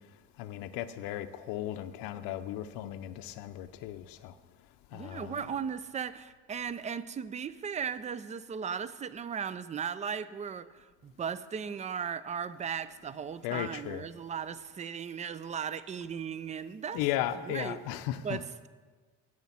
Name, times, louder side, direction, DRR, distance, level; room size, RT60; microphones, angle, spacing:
voice 1, 0.4-4.3 4.9-5.4 13.4-14.1 16.9-18.4, left 12 dB, 85° left, 0.5 m, -36 dB
voice 2, 4.9-17.0 17.5-17.8 18.2-18.7, right 7 dB, 20° right, 0.3 m, -37 dB
9.1 x 6.3 x 7.1 m
cardioid pair, 105°, 34 cm